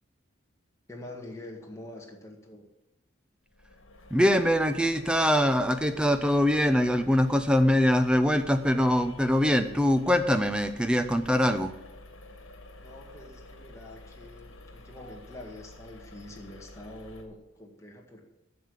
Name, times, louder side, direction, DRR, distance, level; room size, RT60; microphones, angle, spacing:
voice 1, 0.9-2.7 12.8-18.2, left 1 dB, 15° left, -1 dB, 1.8 m, -45 dB
sound 1, 3.5-17.2, left 2 dB, 80° left, 1.6 m, -49 dB
voice 2, 4.1-11.7, equal, 5° right, 9 dB, 0.6 m, -23 dB
10.5 x 6.7 x 8.1 m, 0.92 s
head